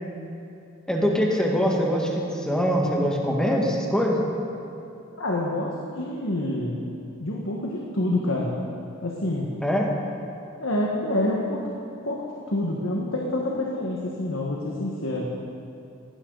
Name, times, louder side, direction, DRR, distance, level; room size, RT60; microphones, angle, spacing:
voice 1, 0.9-4.2 9.6-9.9, equal, 5° left, -2 dB, 2.0 m, -23 dB
voice 2, 5.2-6.8 7.2-8.6 9.0-9.5 10.6-11.6 12.0-15.2, left 1 dB, 85° left, -2 dB, 1.7 m, -27 dB
18.0 x 16.0 x 4.1 m, 2.8 s
head